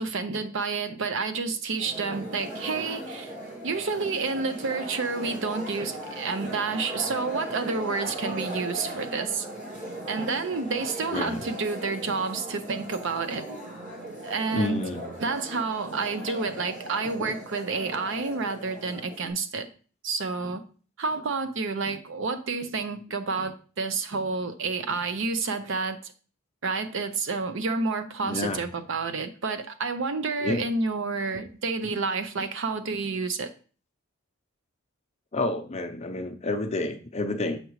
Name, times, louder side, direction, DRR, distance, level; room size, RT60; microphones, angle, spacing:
voice 1, 0.0-3.3 3.6-9.5 10.1-13.5 14.2-14.8 15.2-19.7 20.0-20.6 21.0-26.1 26.6-33.5, right 4 dB, 65° right, 0.6 m, -29 dB
sound 1, 1.8-19.3, right 1 dB, 40° right, 2.1 m, -38 dB
voice 2, 11.1-11.4 14.5-15.1 17.0-17.3 28.2-28.6 30.4-30.6 35.3-37.6, left 2 dB, 30° left, 0.6 m, -29 dB
6.7 x 4.9 x 3.1 m
head